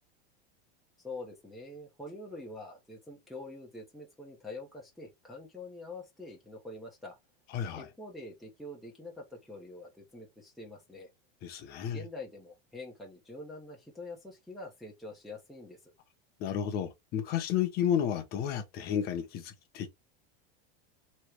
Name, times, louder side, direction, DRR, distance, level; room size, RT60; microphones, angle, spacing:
voice 1, 1.0-7.2 7.7-11.1 11.9-15.8, left 2 dB, ahead, 0.9 m, -45 dB
voice 2, 7.5-7.9 11.4-12.0 16.4-19.9, left 9 dB, 30° left, 0.9 m, -32 dB
3.2 x 3.1 x 4.5 m
supercardioid pair, 165°, 30 cm